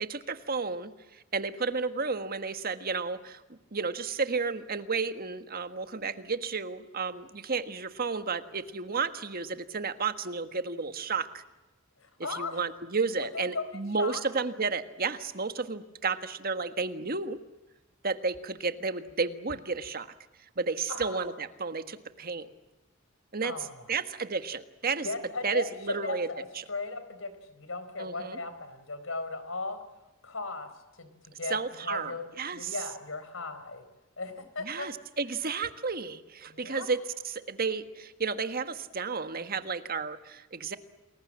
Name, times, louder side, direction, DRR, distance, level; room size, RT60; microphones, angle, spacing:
voice 1, 0.0-11.4 12.4-17.4 18.0-20.1 20.6-22.5 23.3-23.5 23.9-25.1 25.4-26.3 26.6-26.7 28.0-28.4 31.5-32.7 34.6-37.0 37.2-40.8, right 4 dB, 50° right, 9 dB, 1.5 m, -32 dB
voice 2, 12.0-12.6 13.2-14.2 20.9-21.3 23.4-24.0 25.0-26.4 26.7-29.8 30.2-30.7 31.0-32.2 32.5-33.8 34.2-35.2 36.5-36.9, left 3 dB, 85° left, 11 dB, 4.1 m, -37 dB
29.5 x 21.5 x 7.6 m, 1.1 s
head